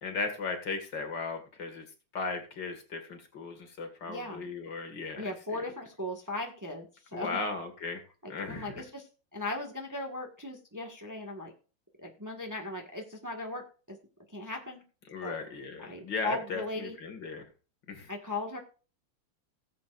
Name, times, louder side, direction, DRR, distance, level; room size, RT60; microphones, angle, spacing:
voice 1, 0.0-1.9 2.1-5.3 7.1-8.0 8.3-8.8 15.1-17.4 17.9-18.1, left 4 dB, 65° left, 5 dB, 2.5 m, -36 dB
voice 2, 4.1-4.5 5.2-7.4 8.2-9.1 9.3-11.5 12.0-14.0 14.3-14.8 15.2-15.3 15.8-17.0 18.1-18.6, left 2 dB, 10° right, 2 dB, 1.4 m, -38 dB
18.0 x 7.7 x 2.5 m, 0.36 s
omnidirectional pair, 2.1 m